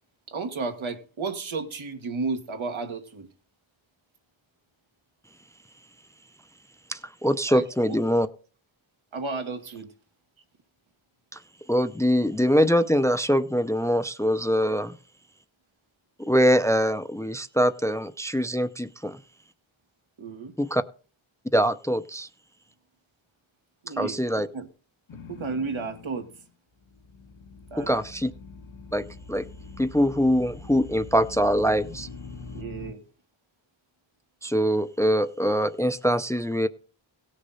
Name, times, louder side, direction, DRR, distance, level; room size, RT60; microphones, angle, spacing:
voice 1, 0.3-3.3 7.5-8.0 9.1-9.9 20.2-20.5 23.8-24.2 24.5-24.7 25.3-26.3 27.7-27.9 32.5-33.0, right 4 dB, 80° right, 1.6 m, -33 dB
voice 2, 6.9-8.3 11.3-11.4 11.7-15.0 16.2-19.2 20.6-20.8 21.5-22.3 24.0-24.5 27.8-28.3 28.9-29.5 29.8-32.1 34.4-36.7, equal, 5° left, 0.5 m, -23 dB
sound 1, 25.1-26.5 26.8-32.9, left 4 dB, 85° left, 1.4 m, -44 dB
17.0 x 6.5 x 4.1 m
wide cardioid pair, 80°, 47 cm